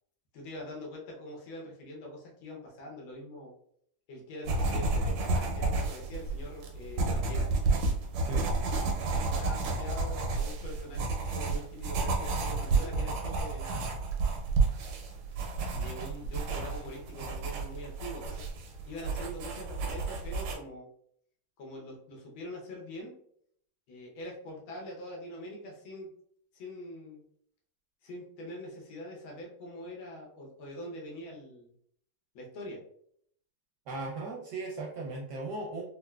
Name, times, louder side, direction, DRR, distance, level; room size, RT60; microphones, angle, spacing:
voice 1, 0.3-3.5 4.1-7.5 9.2-14.0 15.7-18.4 18.9-20.9 21.6-23.1 23.9-26.1 26.5-27.2 28.0-31.7 32.3-32.8, left 1 dB, 75° left, -1 dB, 1.6 m, -43 dB
sound 1, 4.4-20.5, right 3 dB, 85° right, 1.5 m, -31 dB
voice 2, 33.9-35.8, right 2 dB, 70° right, -3 dB, 1.0 m, -37 dB
4.3 x 2.1 x 2.2 m, 0.67 s
omnidirectional pair, 2.3 m